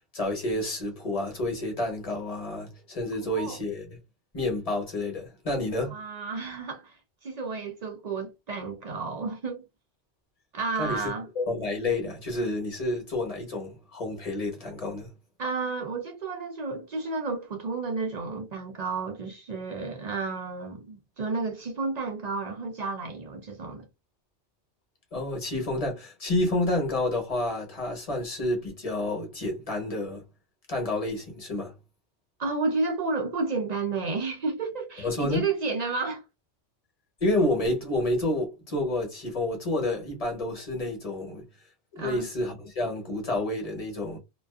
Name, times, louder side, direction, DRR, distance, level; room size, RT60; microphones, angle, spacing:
voice 1, 0.1-3.9 4.3-6.0 10.8-15.1 25.1-30.2 30.7-31.7 35.0-35.4 37.2-41.4 41.9-44.2, left 1 dB, 35° left, 0.9 m, -29 dB
voice 2, 3.2-3.6 5.9-9.6 10.5-11.3 15.4-23.9 32.4-36.2 42.0-42.3, right 3 dB, 55° right, 0.4 m, -31 dB
2.4 x 2.2 x 2.3 m
omnidirectional pair, 1.2 m